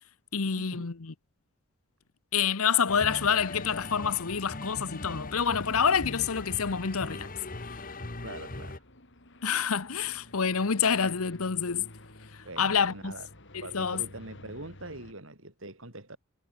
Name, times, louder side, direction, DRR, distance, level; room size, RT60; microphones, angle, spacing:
voice 1, 0.3-1.1 2.3-7.3 9.4-11.9 12.6-13.1 13.5-14.0, left 6 dB, 85° left, 1.0 m, -27 dB
sound 1, 2.9-8.8, left 2 dB, 40° left, 1.8 m, -39 dB
sound 2, 3.4-15.1, left 1 dB, 55° left, 4.3 m, -53 dB
voice 2, 8.2-8.8 12.4-13.3 13.6-16.2, right 2 dB, 65° right, 5.3 m, -43 dB
head